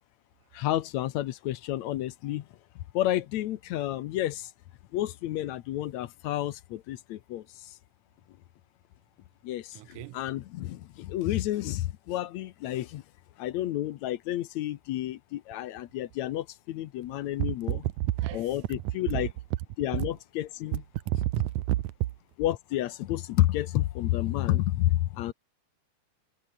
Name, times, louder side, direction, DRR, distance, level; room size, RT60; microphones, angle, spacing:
voice 1, 0.5-2.5 2.9-4.5 4.9-7.8 9.4-13.0 13.4-17.9 18.3-19.3 19.8-20.8 21.1-21.2 22.4-25.3, left 14 dB, 70° left, 2.0 m, -30 dB
voice 2, 9.7-10.2 17.4-18.8 19.1-19.3 21.1-21.8, right 15 dB, 80° right, 2.3 m, -30 dB
omnidirectional pair, 3.5 m